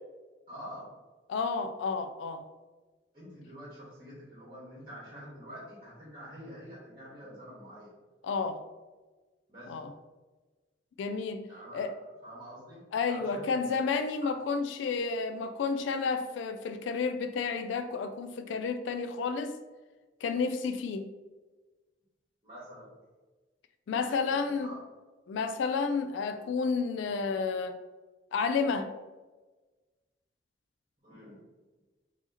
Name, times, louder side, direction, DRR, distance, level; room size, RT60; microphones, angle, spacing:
voice 1, 0.5-0.9 3.1-7.9 9.5-9.8 11.5-11.9 12.2-13.7 14.2-14.3 22.4-22.9 24.0-24.8 31.0-31.4, equal, 25° right, -7 dB, 1.4 m, -47 dB
voice 2, 1.3-2.5 8.2-8.6 9.7-9.9 11.0-12.0 12.9-19.6 20.2-21.1 23.9-24.7 25.3-27.8 28.3-28.9, left 5 dB, 80° left, 9 dB, 0.3 m, -31 dB
4.6 x 2.8 x 2.8 m, 1.3 s
head